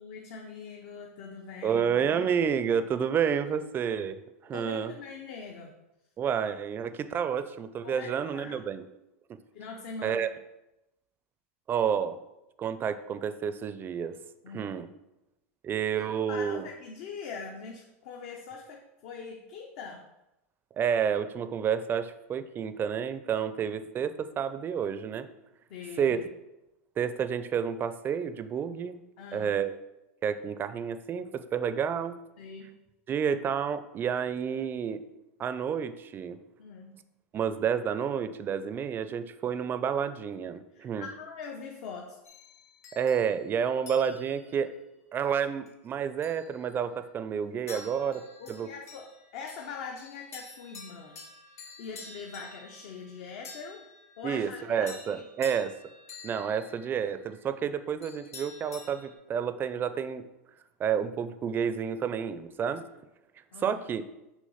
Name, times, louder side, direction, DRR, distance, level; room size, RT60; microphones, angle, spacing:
voice 1, 0.0-1.8 4.5-5.7 7.8-8.7 9.5-10.3 14.4-14.7 16.3-20.1 23.3-23.6 25.7-26.2 29.2-29.6 32.4-32.7 36.6-37.0 40.7-42.2 47.7-48.1 48.4-51.2 51.8-53.8 54.2-55.6 63.5-63.8, left 5 dB, 60° left, 1 dB, 0.8 m, -42 dB
voice 2, 1.6-4.2 4.4-4.9 6.2-8.9 10.0-10.3 11.7-12.2 12.6-14.1 14.5-14.9 15.6-16.7 20.8-25.3 26.0-26.2 27.0-29.0 29.3-29.7 30.2-32.1 33.1-35.0 35.4-36.4 37.3-41.1 42.9-44.7 45.1-48.2 48.5-48.7 54.2-55.7 56.2-60.2 60.8-62.8 63.6-64.0, right 7 dB, 25° right, 11 dB, 0.4 m, -30 dB
sound 1, 42.2-44.6 45.4-45.7 46.2-47.1 47.7-59.1, left 3 dB, 85° left, 1.1 m, -50 dB
6.4 x 3.1 x 5.5 m, 0.93 s
hypercardioid pair, 120°, 8 cm